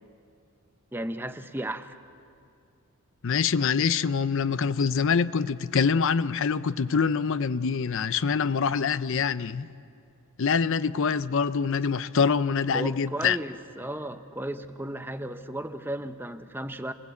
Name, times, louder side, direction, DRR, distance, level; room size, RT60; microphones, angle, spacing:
voice 1, 0.9-2.0 12.7-16.9, right 1 dB, 10° right, 0.8 m, -34 dB
voice 2, 3.2-9.7 10.4-13.4, left 6 dB, 60° left, 0.5 m, -25 dB
28.5 x 20.5 x 8.3 m
head